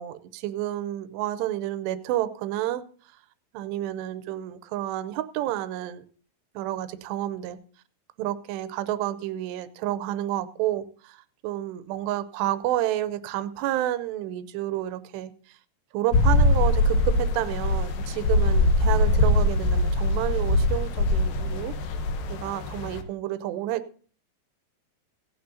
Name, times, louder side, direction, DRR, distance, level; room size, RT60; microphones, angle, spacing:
voice 1, 0.0-2.8 3.5-6.0 6.6-7.6 8.2-15.6 15.9-21.8 22.3-24.0, right 13 dB, 85° right, 12 dB, 2.8 m, -30 dB
sound 1, 16.1-23.0, left 1 dB, 75° left, 2.2 m, -22 dB
17.5 x 10.5 x 2.7 m, 0.41 s
omnidirectional pair, 4.9 m